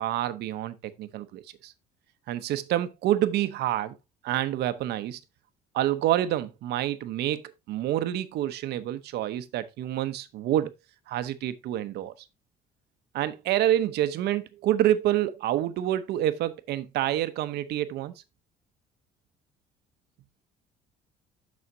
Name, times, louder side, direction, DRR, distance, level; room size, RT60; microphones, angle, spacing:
voice 1, 0.0-1.7 2.3-4.0 4.2-5.2 5.7-10.7 11.1-12.1 13.1-18.1, right 12 dB, 75° right, 0.8 m, -27 dB
12.5 x 4.2 x 2.7 m
cardioid pair, 110°, 17 cm